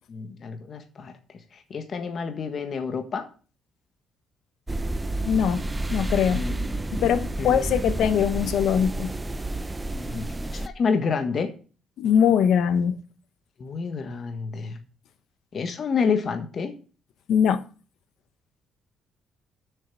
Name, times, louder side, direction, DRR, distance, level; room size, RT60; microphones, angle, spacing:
voice 1, 0.1-1.1 1.7-3.3 6.3-6.5 7.0-7.1 7.4-7.6 9.9-10.3 10.5-11.5 13.6-14.8 15.5-16.8, left 5 dB, 45° left, 1.5 m, -28 dB
chilly hell, 4.7-10.7, right 2 dB, 15° right, 0.7 m, -30 dB
voice 2, 5.3-6.5 7.0-9.1 12.0-13.0 17.3-17.7, left 8 dB, 70° left, 0.9 m, -22 dB
7.4 x 6.5 x 7.6 m
cardioid pair, 105°, 0 cm